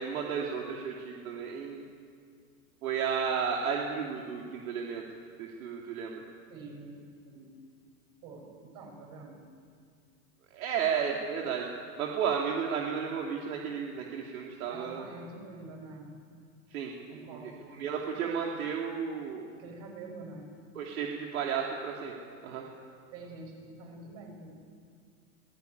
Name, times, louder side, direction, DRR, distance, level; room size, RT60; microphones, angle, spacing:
voice 1, 0.0-1.8 2.8-5.0 5.4-6.1 10.5-11.7 12.0-15.0 16.7-16.9 17.3-17.5 17.8-19.5 20.8-22.1 22.4-22.6, right 7 dB, 60° right, -1 dB, 2.9 m, -33 dB
voice 2, 6.5-7.6 8.2-9.4 14.7-16.2 17.1-17.8 19.5-20.5 23.1-24.6, right 3 dB, 35° right, 2 dB, 6.1 m, -46 dB
24.0 x 17.5 x 9.4 m, 2.2 s
supercardioid pair, 160°, 47 cm